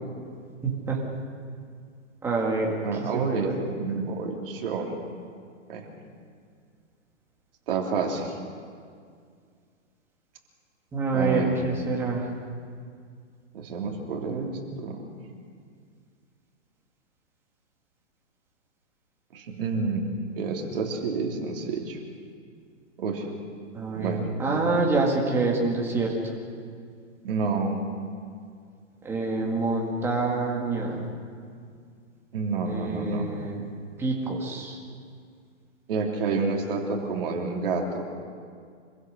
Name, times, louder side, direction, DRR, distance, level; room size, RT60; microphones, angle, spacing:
voice 1, 0.6-1.0 2.2-2.7 3.0-3.6 10.9-12.3 23.7-26.1 29.0-31.0 32.7-33.7 34.0-34.8, right 3 dB, 5° right, -2 dB, 1.9 m, -26 dB
voice 2, 2.8-4.9 5.7-5.9 7.7-8.3 11.1-11.6 13.5-15.0 19.3-20.0 20.4-22.0 23.0-23.3 23.9-24.2 27.2-27.8 32.3-33.3 35.9-38.0, right 4 dB, 45° right, 1 dB, 3.3 m, -29 dB
26.5 x 16.0 x 6.4 m, 2.1 s
hypercardioid pair, 170°, 38 cm